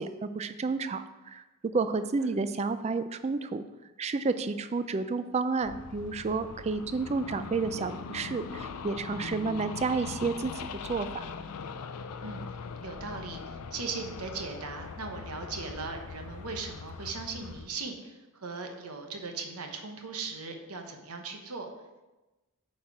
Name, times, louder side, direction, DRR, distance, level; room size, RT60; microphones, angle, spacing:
voice 1, 0.0-3.7 4.0-11.3, right 4 dB, 30° right, 11 dB, 0.3 m, -31 dB
sound 1, 5.6-17.7, left 5 dB, 85° left, 0.5 m, -41 dB
voice 2, 12.2-12.5 12.8-21.7, right 4 dB, 80° right, 4 dB, 1.1 m, -38 dB
8.5 x 4.4 x 4.8 m, 1.1 s
head